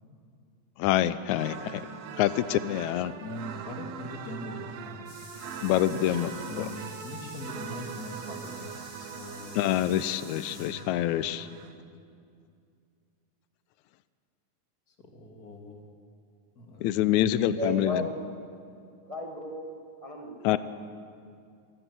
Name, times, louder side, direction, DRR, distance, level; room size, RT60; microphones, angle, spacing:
voice 1, 0.8-1.9 2.2-3.1 5.6-6.7 9.6-11.5 16.8-18.1 20.4-20.6, left 12 dB, 75° left, 14 dB, 1.8 m, -26 dB
sound 1, 1.3-11.7, right 7 dB, 70° right, 1.8 m, -42 dB
voice 2, 3.2-5.1 5.9-6.2 6.4-8.7 9.1-9.7 10.5-10.8 15.1-15.8 16.6-16.9, left 1 dB, 30° left, 2 dB, 2.2 m, -41 dB
sound 2, 5.1-10.7, left 1 dB, 60° left, 8.7 m, -49 dB
voice 3, 17.6-18.2 19.1-19.6 20.0-20.6, left 1 dB, 40° right, 1 dB, 0.4 m, -34 dB
23.0 x 15.5 x 7.8 m, 2.4 s
omnidirectional pair, 3.9 m